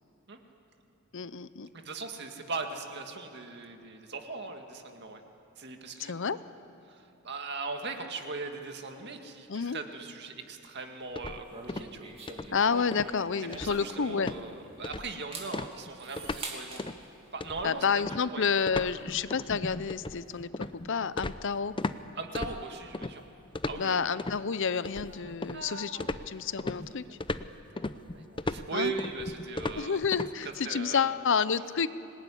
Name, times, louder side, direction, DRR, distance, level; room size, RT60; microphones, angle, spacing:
voice 1, 1.1-1.7 6.0-6.4 9.5-9.8 12.5-14.3 17.6-21.7 23.8-27.2 28.7-28.9 29.8-31.9, left 6 dB, 60° left, 15 dB, 0.7 m, -30 dB
voice 2, 1.7-5.2 5.6-6.1 6.9-12.1 13.5-16.9 17.3-18.9 22.2-23.2 23.7-24.2 25.1-26.3 27.1-27.2 27.7-30.1 30.4-31.1, right 3 dB, 50° right, 4 dB, 2.2 m, -39 dB
sound 1, 11.2-12.0 12.3-12.6 12.9-13.2 13.5-13.9 14.2-14.4 14.8-15.2 15.5-16.5 16.8-17.0 17.4-22.0 22.4-23.1 23.6-24.4 24.9-25.7 26.0-30.3, left 2 dB, 25° left, 0.6 m, -36 dB
sound 2, 11.5-14.7 15.1-16.9, right 3 dB, 25° right, 2.9 m, -44 dB
26.0 x 20.0 x 10.0 m, 2.9 s
head